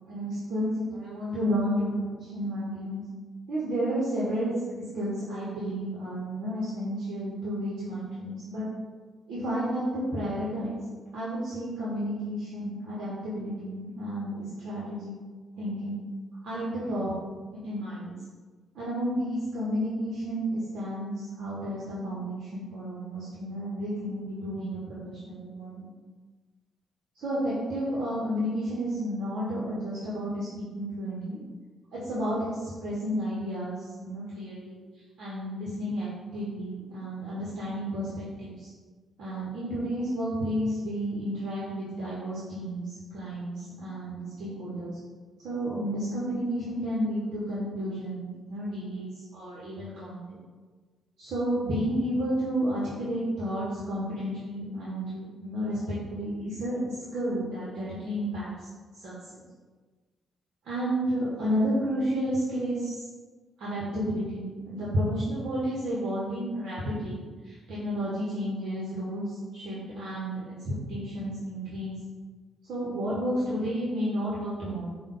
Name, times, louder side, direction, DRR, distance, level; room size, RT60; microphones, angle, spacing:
voice 1, 0.1-3.0 3.5-4.5 4.9-8.7 9.3-10.8 11.1-15.1 15.6-16.0 16.4-17.1 17.6-18.2 18.7-25.9 27.1-31.4 31.9-34.8 35.2-38.7 39.2-45.0 45.4-50.4 51.2-58.7 58.9-59.4 60.6-63.1 63.6-72.0 72.7-74.9, equal, 75° right, -7 dB, 1.0 m, -31 dB
5.2 x 2.3 x 3.7 m, 1.4 s
cardioid pair, 80°, 0 cm